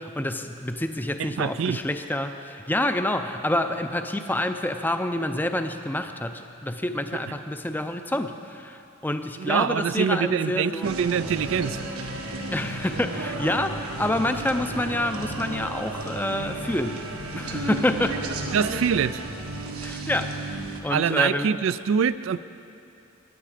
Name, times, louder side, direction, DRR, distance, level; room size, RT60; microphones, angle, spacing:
voice 1, 0.0-10.9 12.5-17.0 17.3-18.2 19.8-21.5, left 1 dB, 10° left, 7 dB, 0.5 m, -28 dB
voice 2, 1.2-1.8 9.4-11.9 18.5-19.2 20.9-22.4, right 7 dB, 65° right, 15 dB, 0.3 m, -24 dB
sound 1, 10.8-20.8, right 2 dB, 90° right, 1.5 m, -33 dB
22.0 x 10.0 x 5.0 m, 2.8 s
head